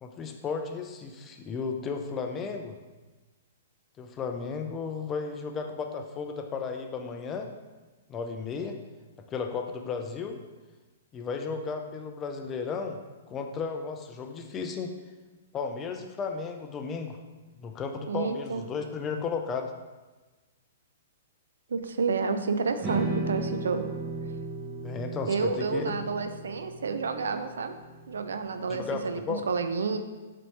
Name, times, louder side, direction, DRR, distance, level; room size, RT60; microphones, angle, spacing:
voice 1, 0.0-2.8 4.0-7.5 8.1-8.8 9.3-10.4 11.1-13.0 13.3-14.9 15.5-17.2 17.6-19.7 24.8-25.8 28.7-29.4, left 5 dB, 20° left, 5 dB, 0.3 m, -34 dB
voice 2, 18.1-18.6 21.7-23.9 25.2-27.7 28.1-29.2 29.5-30.0, right 4 dB, 90° right, 8 dB, 0.3 m, -30 dB
sound 1, 22.8-29.1, right 2 dB, 25° right, 0.7 m, -36 dB
4.2 x 2.7 x 3.2 m, 1.2 s
hypercardioid pair, 150°, 0 cm